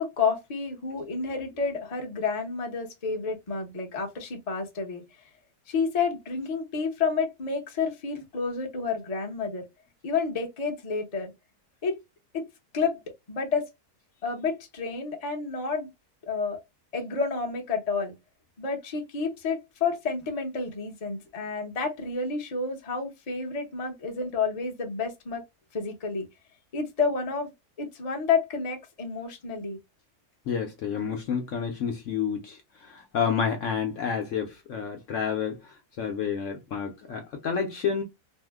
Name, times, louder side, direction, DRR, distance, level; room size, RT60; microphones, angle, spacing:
voice 1, 0.0-5.0 5.7-9.6 10.0-11.3 11.8-11.9 12.3-12.4 12.7-13.0 13.3-13.7 14.2-15.9 16.2-16.6 16.9-18.1 18.6-25.4 25.7-26.3 26.7-27.5 27.8-29.8, left 5 dB, 35° left, 0.6 m, -30 dB
voice 2, 30.5-38.0, left 7 dB, 65° left, 0.8 m, -30 dB
2.7 x 2.1 x 3.4 m
omnidirectional pair, 1.7 m